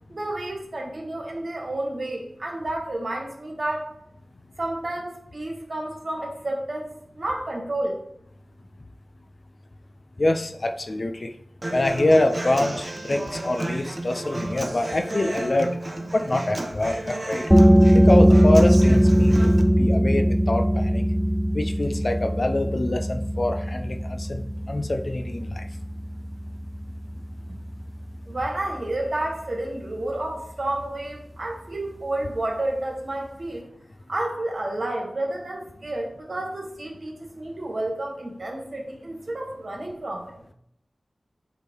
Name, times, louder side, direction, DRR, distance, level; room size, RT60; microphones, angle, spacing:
voice 1, 0.1-3.9 4.6-8.0 27.5-27.6 28.3-33.6 34.1-40.4, right 1 dB, 55° right, 0 dB, 1.6 m, -30 dB
voice 2, 10.2-11.3 11.7-15.7 16.1-17.4 17.9-19.5 19.8-21.0 21.5-25.7, left 1 dB, 50° left, 6 dB, 0.6 m, -25 dB
Human voice / Acoustic guitar, 11.6-19.6, right 1 dB, 30° right, 0.9 m, -32 dB
sound 1, 17.5-28.9, equal, 5° right, 0.3 m, -20 dB
8.0 x 3.7 x 4.5 m, 0.73 s
wide cardioid pair, 80°, 0 cm